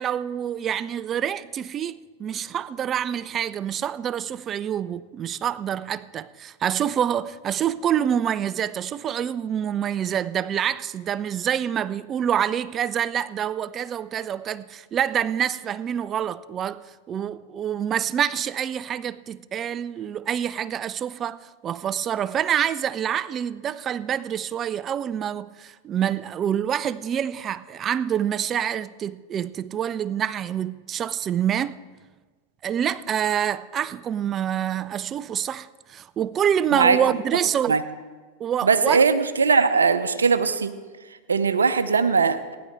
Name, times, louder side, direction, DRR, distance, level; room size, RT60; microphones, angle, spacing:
voice 1, 0.0-16.8 17.1-31.8 32.6-37.8 38.4-39.0, right 9 dB, 30° right, 0.4 m, -26 dB
voice 2, 38.6-40.7 41.3-42.5, right 5 dB, 90° right, 0.7 m, -20 dB
15.5 x 10.5 x 4.7 m
hypercardioid pair, 100°, 0 cm